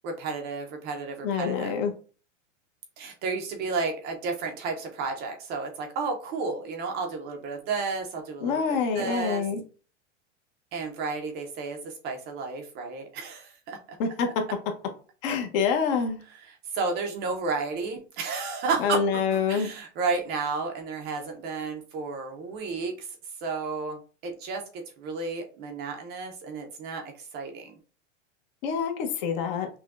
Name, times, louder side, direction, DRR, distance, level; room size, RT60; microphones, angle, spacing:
voice 1, 0.0-1.7 3.0-9.4 10.7-13.8 16.3-19.0 19.3-23.2 23.4-27.8, right 4 dB, 25° right, 4 dB, 0.5 m, -32 dB
voice 2, 1.2-1.9 8.4-9.6 14.0-14.3 15.2-16.2 18.8-19.7 28.6-29.7, left 6 dB, 45° left, 4 dB, 0.9 m, -26 dB
5.8 x 2.2 x 2.4 m, 0.37 s
supercardioid pair, 145°, 37 cm